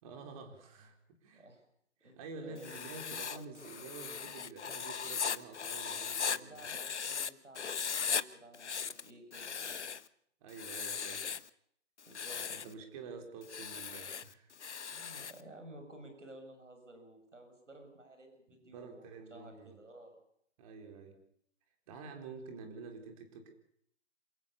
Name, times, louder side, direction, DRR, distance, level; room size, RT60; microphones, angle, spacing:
voice 1, 0.0-1.5 2.0-6.6 10.4-11.2 12.3-14.5 18.7-19.8 20.6-21.2 21.9-23.5, right 4 dB, 30° right, 5 dB, 4.4 m, -49 dB
voice 2, 2.4-2.8 6.1-9.9 12.0-12.7 14.9-20.1, right 1 dB, 90° right, 5 dB, 6.7 m, -54 dB
Writing, 2.6-7.3 7.6-8.2 8.5-10.1 10.5-11.5 12.0-12.7 13.4-15.4, left 6 dB, 70° left, 1.1 m, -38 dB
27.5 x 16.0 x 7.1 m, 0.69 s
figure-of-eight pair, 145°, 36 cm